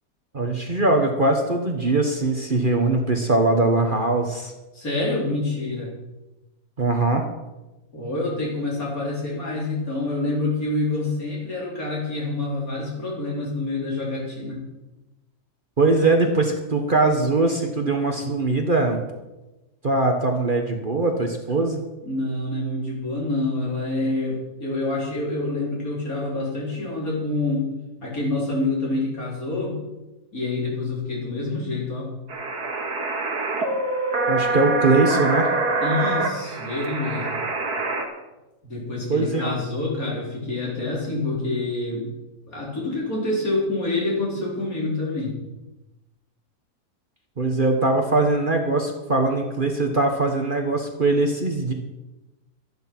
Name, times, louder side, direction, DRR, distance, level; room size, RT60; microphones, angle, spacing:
voice 1, 0.3-4.5 6.8-7.3 15.8-19.1 19.8-21.8 34.3-35.5 39.1-39.5 47.4-51.7, right 2 dB, 35° right, 3 dB, 1.4 m, -21 dB
voice 2, 4.7-5.9 7.9-14.6 22.0-27.7 28.0-29.8 30.3-32.1 35.8-37.4 38.6-42.1 42.5-45.4, left 2 dB, 60° left, -4 dB, 4.8 m, -27 dB
sound 1, 32.3-38.0, right 3 dB, 80° right, 2.4 m, -25 dB
13.0 x 11.0 x 6.0 m, 1.0 s
omnidirectional pair, 1.7 m